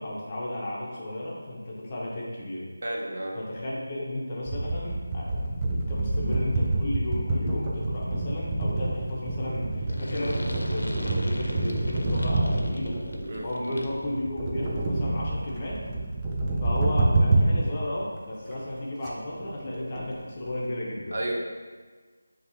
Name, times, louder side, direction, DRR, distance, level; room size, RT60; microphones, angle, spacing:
voice 1, 0.0-2.7 3.3-13.0 13.4-15.8 16.6-21.2, left 1 dB, 25° left, -5 dB, 0.8 m, -34 dB
voice 2, 2.8-3.3 13.3-13.4 21.1-21.3, right 1 dB, 50° right, -2 dB, 0.7 m, -31 dB
sound 1, 4.5-17.7 18.2-18.3 18.5-18.7 19.0-19.1 19.3-20.7, right 2 dB, 15° right, 0.4 m, -27 dB
sound 2, 9.9-14.1, left 1 dB, 75° left, 0.5 m, -39 dB
5.7 x 2.7 x 2.7 m, 1.4 s
figure-of-eight pair, 165°, 0 cm